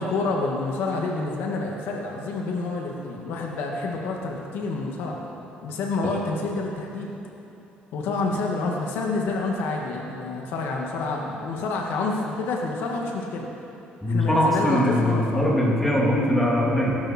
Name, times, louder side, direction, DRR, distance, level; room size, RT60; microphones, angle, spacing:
voice 1, 0.0-5.2 5.6-7.1 7.9-13.5 14.1-15.4, left 3 dB, 90° left, 0 dB, 2.1 m, -28 dB
voice 2, 14.0-17.0, left 1 dB, 5° left, -4 dB, 2.7 m, -21 dB
22.5 x 12.0 x 4.6 m, 3.0 s
cardioid pair, 170°, 4 cm